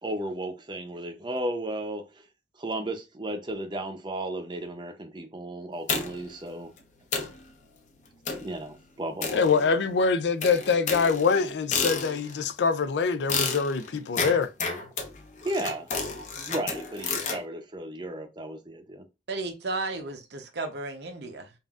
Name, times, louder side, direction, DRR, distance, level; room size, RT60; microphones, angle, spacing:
voice 1, 0.0-2.3 2.6-6.7 8.4-9.5 15.4-15.9 16.3-19.0, right 1 dB, 25° right, 0.6 m, -34 dB
sound 1, 5.9-6.4 6.8-6.9 7.1-7.4 8.3-8.6 9.2-9.9 10.4-12.4 13.3-17.4, left 4 dB, 45° left, 0.7 m, -31 dB
voice 2, 9.3-14.5, left 5 dB, 80° left, 0.4 m, -24 dB
voice 3, 19.3-21.5, right 3 dB, 70° right, 0.8 m, -34 dB
5.4 x 2.5 x 2.4 m
head